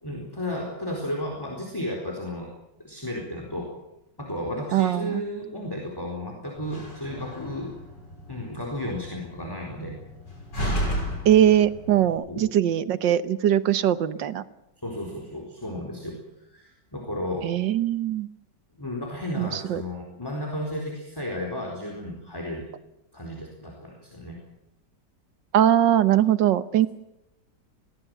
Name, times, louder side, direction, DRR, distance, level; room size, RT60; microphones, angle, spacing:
voice 1, 0.0-2.5 2.8-3.7 4.2-7.7 8.3-10.0 12.3-12.5 14.8-16.2 16.5-17.6 18.8-22.7 23.1-24.4, left 1 dB, 10° left, 0 dB, 4.2 m, -33 dB
voice 2, 4.7-5.2 11.2-14.4 17.4-18.3 19.3-19.8 25.5-26.9, right 11 dB, 90° right, 13 dB, 1.7 m, -21 dB
Slam, 6.6-12.2, equal, 75° left, 6.3 m, -34 dB
22.0 x 18.0 x 7.8 m, 0.89 s
omnidirectional pair, 1.9 m